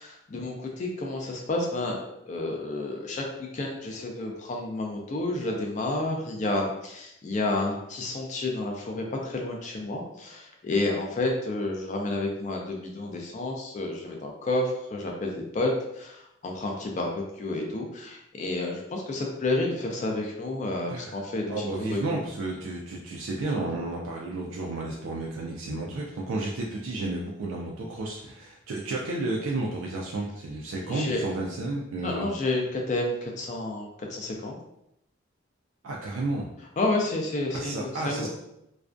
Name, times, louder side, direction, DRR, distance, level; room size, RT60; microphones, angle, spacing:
voice 1, 0.0-2.0 2.3-3.2 3.5-22.0 30.8-31.2 32.0-34.6 36.8-38.3, left 2 dB, 35° left, 1 dB, 0.3 m, -30 dB
voice 2, 20.9-32.3 35.8-36.5 37.5-38.3, right 2 dB, 85° right, -1 dB, 0.3 m, -32 dB
2.4 x 2.1 x 2.4 m, 0.83 s
head